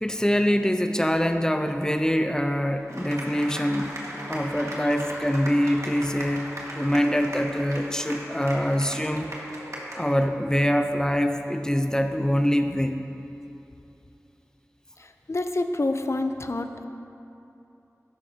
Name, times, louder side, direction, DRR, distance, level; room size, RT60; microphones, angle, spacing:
voice 1, 0.0-4.0 4.3-6.5 6.7-9.3 9.9-13.0, equal, 10° left, 6 dB, 0.6 m, -24 dB
sound 1, 2.9-10.2, right 1 dB, 65° right, 1.7 m, -37 dB
voice 2, 15.0-16.8, left 2 dB, 55° left, 7 dB, 0.6 m, -28 dB
12.5 x 11.5 x 2.8 m, 2.8 s
wide cardioid pair, 55°, 6 cm